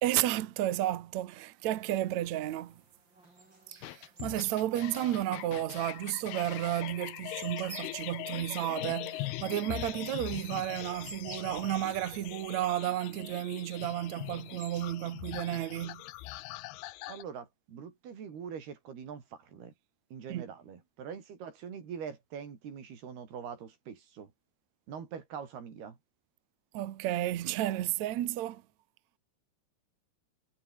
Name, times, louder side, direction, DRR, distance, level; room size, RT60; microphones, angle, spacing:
voice 1, 0.0-2.8 3.8-16.0 20.3-20.4 26.7-28.6, right 13 dB, 60° right, 2.0 m, -32 dB
sound 1, 1.7-14.9, right 2 dB, 30° right, 7.0 m, -56 dB
sound 2, 3.8-17.2, left 18 dB, 85° left, 2.8 m, -41 dB
voice 2, 17.1-19.7 20.1-24.3 24.9-26.0, right 7 dB, 80° right, 5.8 m, -43 dB
omnidirectional pair, 4.5 m